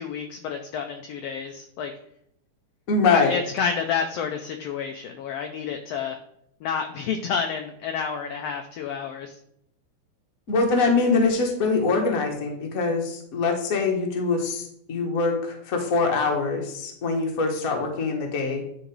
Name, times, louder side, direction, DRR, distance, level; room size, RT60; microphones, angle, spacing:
voice 1, 0.0-1.9 3.1-6.2 6.6-9.4, left 6 dB, 80° left, 5 dB, 1.4 m, -29 dB
voice 2, 2.9-3.3 10.5-18.6, left 4 dB, 45° left, 1 dB, 1.2 m, -23 dB
10.5 x 4.0 x 4.6 m, 0.71 s
omnidirectional pair, 3.4 m